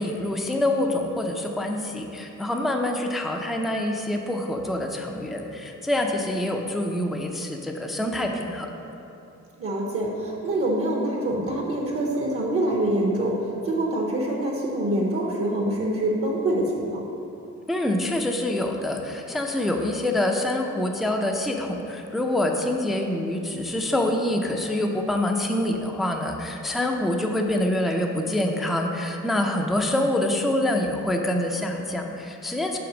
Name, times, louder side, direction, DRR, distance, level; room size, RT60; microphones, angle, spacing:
voice 1, 0.0-8.7 17.7-32.8, left 1 dB, ahead, 2 dB, 0.4 m, -26 dB
voice 2, 9.6-17.0, right 1 dB, 50° right, -1 dB, 0.8 m, -25 dB
5.9 x 4.0 x 6.2 m, 2.8 s
wide cardioid pair, 135°, 30 cm